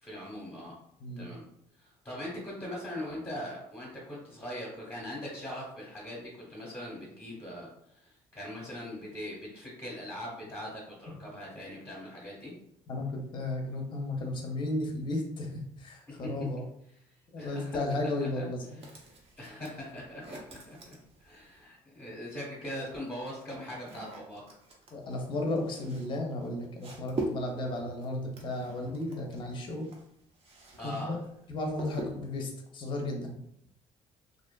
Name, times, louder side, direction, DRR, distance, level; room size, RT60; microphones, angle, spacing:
voice 1, 0.0-0.8 1.2-1.4 1.8-12.5 16.1-16.3 17.4-17.8 18.4-18.5 19.4-24.4 30.8-31.1, left 1 dB, 15° left, -5 dB, 0.9 m, -41 dB
voice 2, 12.9-16.6 17.3-18.8 24.9-29.9 30.8-31.2 31.5-33.4, left 2 dB, 35° left, 1 dB, 0.6 m, -34 dB
sound 1, 18.8-21.7 22.7-30.9 31.2-32.4, right 2 dB, 45° right, 0.7 m, -43 dB
2.5 x 2.4 x 2.2 m, 0.72 s
cardioid pair, 95°, 14 cm